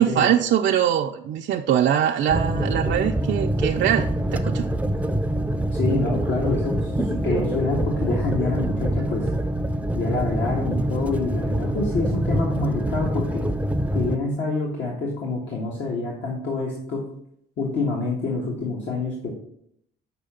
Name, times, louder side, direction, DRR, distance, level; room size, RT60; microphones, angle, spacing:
voice 1, 0.0-4.7, right 10 dB, 65° right, 2 dB, 0.5 m, -22 dB
sound 1, 2.3-14.2, right 1 dB, 5° right, 0.5 m, -25 dB
voice 2, 5.7-9.3 9.9-13.4 13.9-17.0 17.6-19.3, left 3 dB, 70° left, -2 dB, 1.5 m, -27 dB
6.6 x 4.6 x 5.1 m, 0.70 s
cardioid pair, 90°, 20 cm